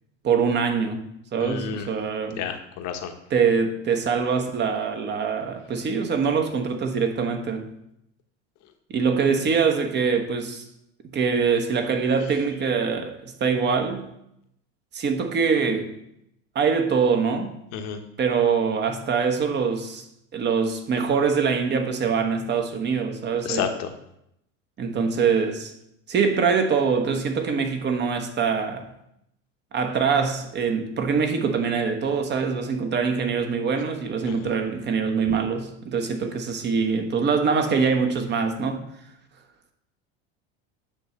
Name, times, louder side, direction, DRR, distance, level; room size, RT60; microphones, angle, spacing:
voice 1, 0.2-2.4 3.3-7.7 8.9-10.6 11.0-14.1 14.9-15.9 16.5-17.5 18.2-20.0 20.3-23.7 24.8-25.7 26.1-28.9 29.7-38.8, right 5 dB, 35° right, 1.1 m, -24 dB
voice 2, 1.4-1.9 2.4-3.1 17.7-18.0 23.4-23.9 34.2-34.3, left 7 dB, 60° left, 1.2 m, -30 dB
8.7 x 3.1 x 6.5 m
supercardioid pair, 115°, 32 cm